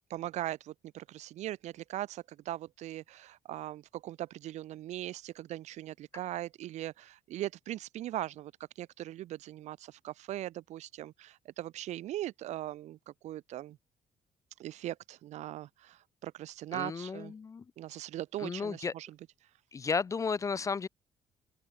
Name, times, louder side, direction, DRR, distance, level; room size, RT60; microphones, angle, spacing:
voice 1, 0.1-8.5 8.8-13.8 14.6-17.3 17.8-19.1, right 14 dB, 80° right, 2.3 m, -40 dB
voice 2, 16.7-17.6 18.4-18.9 19.7-20.9, left 5 dB, 30° left, 0.4 m, -33 dB
open air
cardioid pair, 100°, 12 cm